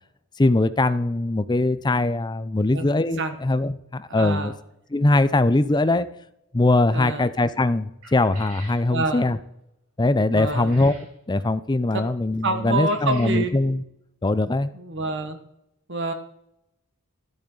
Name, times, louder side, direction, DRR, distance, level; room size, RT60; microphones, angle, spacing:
voice 1, 0.4-4.5 4.9-6.1 6.5-9.4 10.0-10.9 11.3-13.8 14.2-14.7, left 2 dB, 20° left, 13 dB, 0.5 m, -21 dB
voice 2, 4.1-4.5 6.9-7.3 8.9-9.3 10.3-10.8 11.9-12.0 12.4-13.5 14.7-15.4 15.9-16.1, right 3 dB, 55° right, 8 dB, 1.4 m, -27 dB
sound 1, 8.0-8.8 10.4-11.1 12.7-13.4, right 2 dB, 80° right, 4.5 m, -45 dB
13.5 x 8.5 x 3.9 m, 0.81 s
head